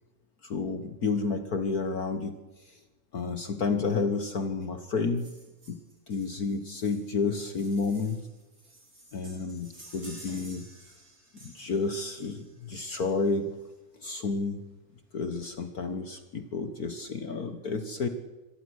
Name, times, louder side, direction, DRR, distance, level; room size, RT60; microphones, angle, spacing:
voice 1, 0.4-2.4 2.7-2.8 3.1-5.4 5.7-5.8 6.1-8.3 9.1-10.7 11.4-13.5 14.0-14.6 15.1-18.1, left 4 dB, 65° left, 9 dB, 0.9 m, -30 dB
sound 1, 5.2-13.5 14.6-14.7 15.0-15.1 15.3-15.5 15.8-16.4 16.9-17.0, right 1 dB, 30° right, 5.1 m, -53 dB
25.5 x 18.0 x 6.4 m, 1.1 s
omnidirectional pair, 3.5 m